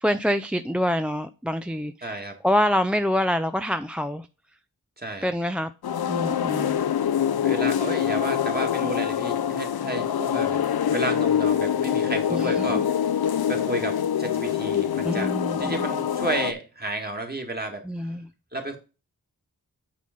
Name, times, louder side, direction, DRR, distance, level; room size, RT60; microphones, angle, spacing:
voice 1, 0.0-2.2 2.4-4.3 5.2-5.7 6.1-6.8 12.3-12.8 15.0-15.9 17.8-18.3, equal, 5° right, 0.3 m, -26 dB
voice 2, 2.0-2.3 5.0-5.3 7.4-10.6 10.9-12.9 13.5-15.3 15.6-18.1 18.5-18.8, right 2 dB, 25° right, 1.9 m, -32 dB
sound 1, 5.8-16.5, left 9 dB, 80° left, 0.5 m, -25 dB
8.5 x 3.9 x 5.2 m
wide cardioid pair, 75°, 37 cm